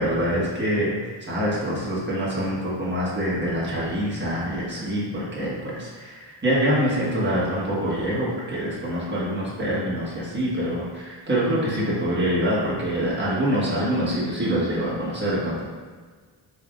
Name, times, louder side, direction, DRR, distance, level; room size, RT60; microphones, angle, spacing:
voice 1, 0.0-15.6, equal, 20° right, -8 dB, 1.4 m, -25 dB
4.5 x 3.4 x 2.4 m, 1.5 s
cardioid pair, 80°, 49 cm